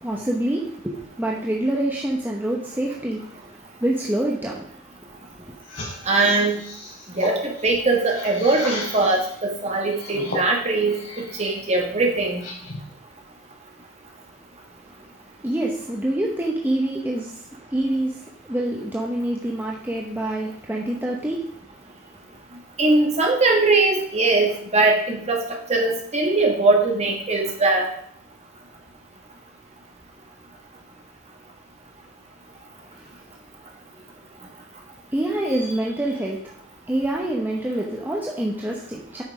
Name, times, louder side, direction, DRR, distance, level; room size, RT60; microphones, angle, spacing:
voice 1, 0.0-4.7 5.3-5.5 15.4-21.5 21.9-22.0 32.9-33.1 35.1-36.4 36.9-39.2, right 1 dB, 10° right, -2 dB, 0.9 m, -26 dB
sound 1, 5.6-9.3 9.8-11.5 11.9-12.9, left 2 dB, 65° left, 4.0 m, -35 dB
voice 2, 6.1-6.6 7.2-12.4 22.8-25.4 25.7-27.9, right 3 dB, 35° right, 1 dB, 1.8 m, -21 dB
8.8 x 6.3 x 4.9 m, 0.63 s
head